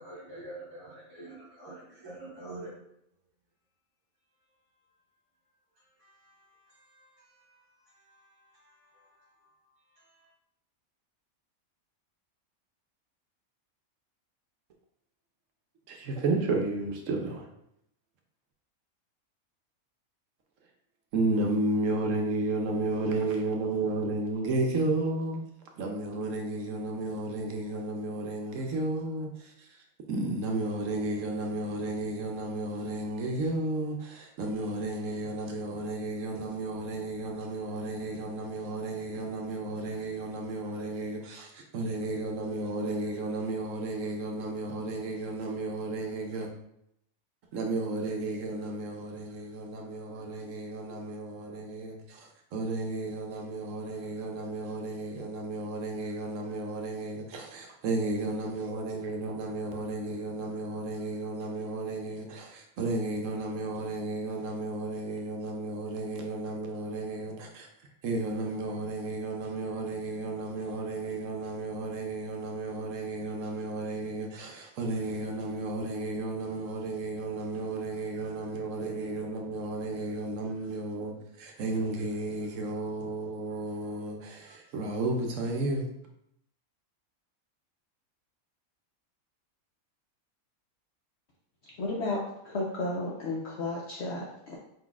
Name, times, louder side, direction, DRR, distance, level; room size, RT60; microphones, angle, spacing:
voice 1, 0.0-2.7 5.7-9.6 9.9-10.3, right 2 dB, 20° right, 1.1 m, -48 dB
voice 2, 15.9-17.5 21.1-25.4 25.8-46.5 47.5-85.9, right 2 dB, 70° right, 0.9 m, -33 dB
voice 3, 91.8-92.2 92.4-94.6, left 2 dB, 60° left, 0.8 m, -33 dB
4.6 x 3.9 x 2.3 m
omnidirectional pair, 1.5 m